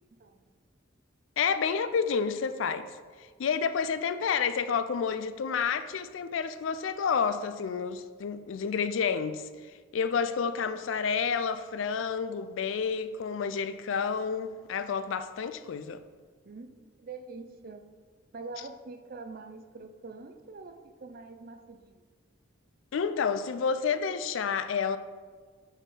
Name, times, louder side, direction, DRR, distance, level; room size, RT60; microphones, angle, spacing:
voice 1, 0.2-0.5 16.4-17.9 18.3-22.1, right 3 dB, 45° right, 0.5 m, -45 dB
voice 2, 1.4-2.9 3.4-9.4 9.9-16.0 22.9-25.0, left 6 dB, 70° left, 0.4 m, -29 dB
7.9 x 4.2 x 3.8 m
head